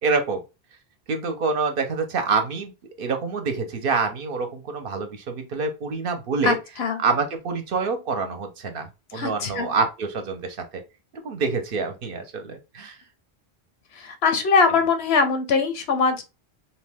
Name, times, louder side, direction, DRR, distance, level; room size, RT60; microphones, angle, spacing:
voice 1, 0.0-0.4 1.1-2.7 3.0-6.6 7.0-10.8 11.2-13.0, right 4 dB, 60° right, 0.7 m, -26 dB
voice 2, 6.4-7.0 9.1-9.7 13.9-16.2, left 4 dB, 75° left, 0.9 m, -22 dB
2.6 x 2.2 x 3.2 m
omnidirectional pair, 1.1 m